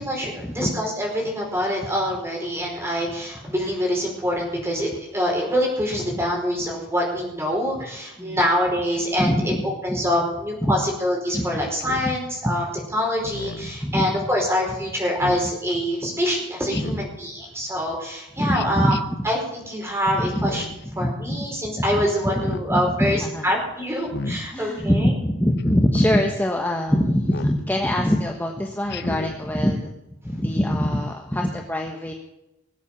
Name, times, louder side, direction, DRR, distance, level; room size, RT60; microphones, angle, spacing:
voice 1, 0.0-12.6 12.9-18.9 19.2-20.6 21.0-25.1, equal, 15° right, -1 dB, 4.9 m, -25 dB
voice 2, 9.2-9.6 9.9-10.1 10.6-10.8 11.3-11.5 11.9-12.0 12.4-12.5 13.8-14.1 16.7-16.8 18.4-19.2 20.1-20.5 20.9-21.5 21.8-23.5 24.3-29.9 30.2-32.1, equal, 10° left, 1 dB, 1.2 m, -24 dB
Speech synthesizer, 11.8-12.1 13.2-13.7 15.2-15.5 16.7-17.2 18.5-19.0 20.3-20.8 22.1-22.7 24.0-24.4 25.6-25.9 27.2-27.6 28.9-29.4, left 3 dB, 55° left, 0.8 m, -34 dB
20.5 x 8.1 x 7.2 m, 0.90 s
head